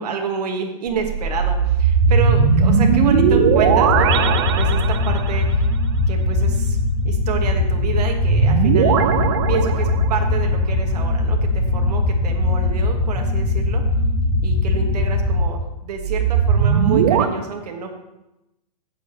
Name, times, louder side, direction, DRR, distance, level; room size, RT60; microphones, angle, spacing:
voice 1, 0.0-5.7 6.1-6.8 7.0-13.8 14.4-17.9, right 5 dB, 80° right, 2 dB, 1.5 m, -29 dB
sound 1, 0.9-5.4 8.2-10.3 16.0-17.3, right 8 dB, 40° right, 0.7 m, -18 dB
sound 2, 2.0-15.4, left 2 dB, 30° left, 3.2 m, -20 dB
12.0 x 8.7 x 2.9 m, 0.92 s
hypercardioid pair, 170°, 20 cm